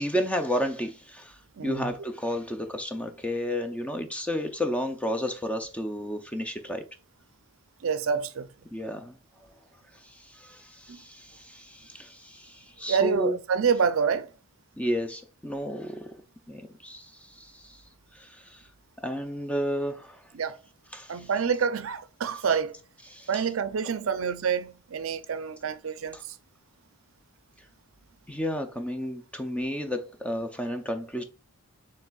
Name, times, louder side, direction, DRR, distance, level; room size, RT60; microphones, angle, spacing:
voice 1, 0.0-6.9 8.7-9.2 10.0-13.4 14.8-16.1 16.5-17.8 18.1-18.6 19.0-20.2 20.9-21.3 23.1-23.4 26.1-26.2 28.3-31.2, equal, 5° left, 0.5 m, -32 dB
voice 2, 1.6-1.9 7.8-8.5 10.9-11.0 12.9-14.3 20.3-20.6 21.1-22.7 23.3-26.4, right 6 dB, 65° right, 0.5 m, -27 dB
7.0 x 3.2 x 2.3 m
head